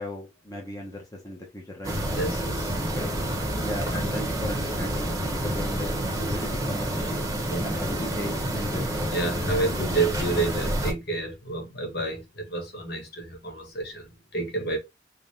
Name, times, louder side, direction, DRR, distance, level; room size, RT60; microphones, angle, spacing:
voice 1, 0.0-2.0 2.9-3.2 3.6-7.3 7.6-8.8, left 1 dB, 20° left, 1.0 m, -36 dB
sound 1, 1.8-10.9, right 1 dB, 15° right, 1.1 m, -28 dB
voice 2, 2.2-2.7 7.5-7.6 9.1-14.1 14.3-14.8, right 3 dB, 55° left, 1.6 m, -29 dB
5.3 x 3.1 x 2.7 m
head